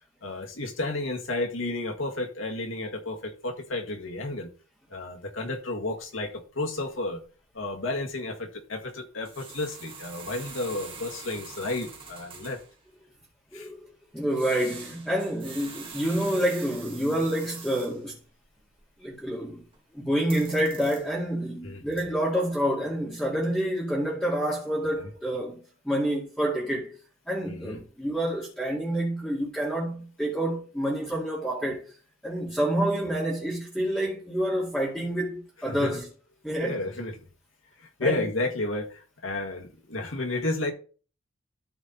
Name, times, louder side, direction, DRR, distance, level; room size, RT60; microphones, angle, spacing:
voice 1, 0.2-4.5 4.9-7.2 7.5-12.6 13.5-13.7 21.6-21.8 27.4-27.8 35.7-35.9 36.6-37.2 37.8-40.7, left 2 dB, 70° left, 1.9 m, -32 dB
sound 1, 5.7-5.8 6.1-6.4 6.7-6.8 7.1-7.2 7.6-7.7 9.2-12.8 14.3-18.1 18.4-19.8 20.1-21.3 21.8-22.0, right 5 dB, 30° right, 2.0 m, -44 dB
voice 2, 13.5-13.9 14.1-18.2 19.0-19.6 19.9-26.9 27.3-31.9 32.2-36.1 36.4-36.8 38.0-38.2, right 1 dB, 5° left, 2.3 m, -28 dB
12.5 x 4.3 x 4.0 m
head